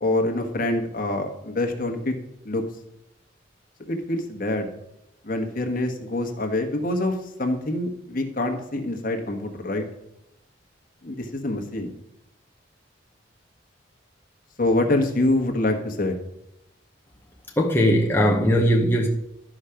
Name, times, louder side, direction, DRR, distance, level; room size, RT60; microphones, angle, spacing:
voice 1, 0.0-2.1 2.4-2.6 3.9-4.7 5.2-9.8 11.0-11.9 14.6-16.2, left 2 dB, 45° left, 4 dB, 1.3 m, -25 dB
voice 2, 17.6-19.1, equal, 10° left, -2 dB, 0.8 m, -19 dB
12.0 x 5.0 x 5.8 m, 0.84 s
head